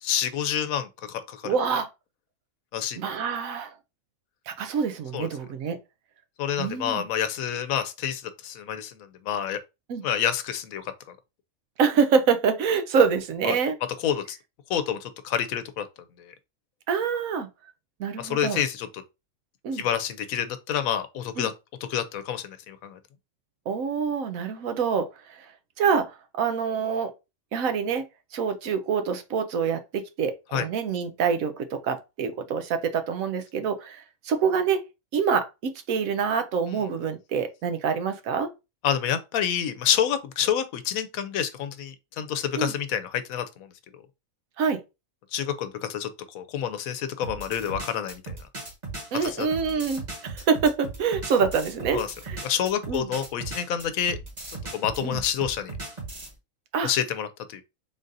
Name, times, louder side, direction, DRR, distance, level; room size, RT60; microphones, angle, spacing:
voice 1, 0.0-1.5 2.7-3.2 5.1-5.3 6.4-9.0 9.2-9.6 10.0-10.8 13.5-13.6 14.0-14.4 14.7-15.8 18.2-18.9 19.7-21.5 21.9-23.0 30.5-30.6 38.8-43.7 45.3-46.1 46.3-48.4 49.2-49.5 51.9-52.1 52.4-54.2 54.7-55.7 56.8-57.6, left 9 dB, 80° left, 1.0 m, -28 dB
voice 2, 1.4-1.9 2.9-3.7 4.5-5.8 6.6-7.0 9.9-10.0 11.8-13.8 16.9-17.5 18.0-18.6 19.6-19.8 21.4-21.5 23.7-25.5 25.8-27.1 27.5-28.1 28.3-34.8 35.1-38.5 42.6-42.7 44.6-44.8 49.1-52.4 52.9-53.1 55.0-55.2 56.7-56.9, right 6 dB, 75° right, 1.1 m, -26 dB
sound 1, 47.2-56.3, right 3 dB, 35° right, 1.3 m, -37 dB
3.8 x 2.5 x 3.9 m
omnidirectional pair, 1.5 m